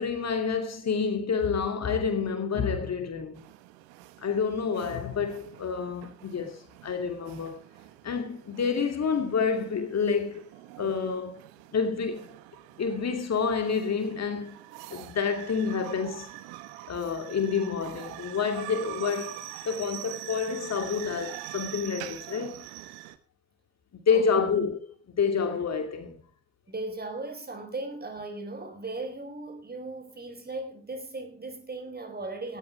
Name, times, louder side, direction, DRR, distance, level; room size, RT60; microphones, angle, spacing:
voice 1, 0.0-3.5 4.2-7.6 8.0-10.4 10.8-11.4 11.7-12.4 12.8-14.6 14.9-16.3 16.9-22.6 23.9-24.8 25.1-26.2, left 5 dB, 40° left, 2.8 m, -28 dB
sound 1, 3.3-23.2, right 16 dB, 65° right, 1.3 m, -44 dB
voice 2, 26.7-32.6, right 2 dB, 25° right, 4.5 m, -37 dB
18.0 x 14.5 x 3.4 m
figure-of-eight pair, 45°, 40 cm